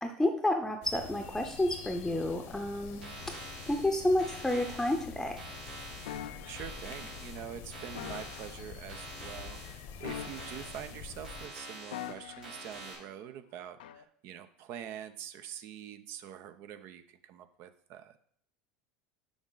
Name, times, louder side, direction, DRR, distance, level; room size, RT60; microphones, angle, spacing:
voice 1, 0.0-5.4, left 1 dB, 5° left, 4 dB, 0.7 m, -30 dB
sound 1, 0.8-11.5, left 7 dB, 60° left, 0.9 m, -47 dB
sound 2, 2.9-13.0, right 2 dB, 90° right, 3.2 m, -47 dB
voice 2, 6.0-18.2, right 10 dB, 55° right, 10 dB, 0.6 m, -45 dB
sound 3, 6.1-6.7 7.9-8.6 10.0-10.9 11.9-12.7 13.8-14.0, left 10 dB, 75° left, 0.4 m, -43 dB
7.1 x 5.1 x 3.9 m, 0.63 s
hypercardioid pair, 80°, 5 cm